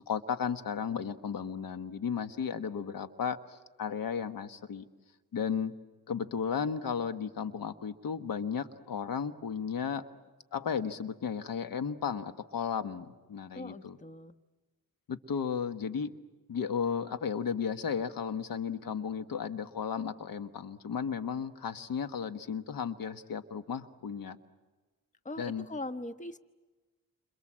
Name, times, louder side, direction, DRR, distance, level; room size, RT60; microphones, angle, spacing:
voice 1, 0.0-4.9 5.3-5.7 6.1-10.0 10.5-14.0 15.1-16.1 16.5-24.4 25.4-25.6, left 7 dB, 70° left, 10 dB, 1.4 m, -34 dB
voice 2, 13.5-14.3 25.2-26.4, left 2 dB, 20° left, 10 dB, 1.1 m, -40 dB
29.5 x 27.0 x 7.5 m, 1.2 s
cardioid pair, 90°, 35 cm